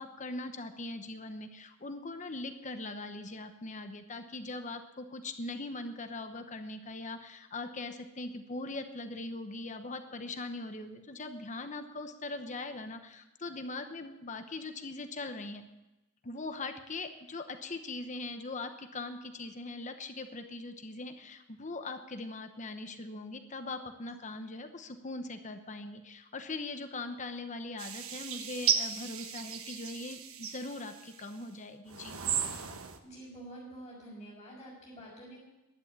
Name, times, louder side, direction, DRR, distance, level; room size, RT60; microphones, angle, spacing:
voice 1, 0.0-15.7 16.2-32.2, left 2 dB, 35° left, 7 dB, 1.0 m, -41 dB
sound 1, 27.8-31.3 31.9-33.0, right 8 dB, 80° right, 1.2 m, -35 dB
voice 2, 33.0-35.4, right 1 dB, 20° left, -10 dB, 5.8 m, -48 dB
11.0 x 9.9 x 9.1 m, 1.0 s
head